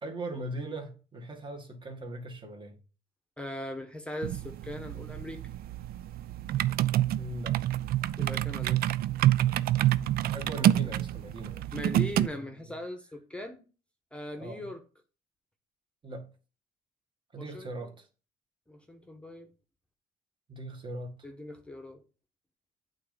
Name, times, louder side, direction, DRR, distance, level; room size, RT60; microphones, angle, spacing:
voice 1, 0.0-2.8 7.2-7.6 10.3-11.7 12.0-12.6 14.4-14.7 16.0-16.2 17.3-18.1 20.5-21.1, right 1 dB, 30° right, 1.8 m, -40 dB
voice 2, 3.4-5.4 8.2-8.8 11.7-13.6 14.1-14.8 17.4-17.9 18.7-19.5 21.2-22.0, left 1 dB, 5° left, 1.0 m, -40 dB
sound 1, 4.2-12.3, right 13 dB, 65° right, 0.4 m, -28 dB
8.6 x 4.0 x 5.1 m
cardioid pair, 110°, 17 cm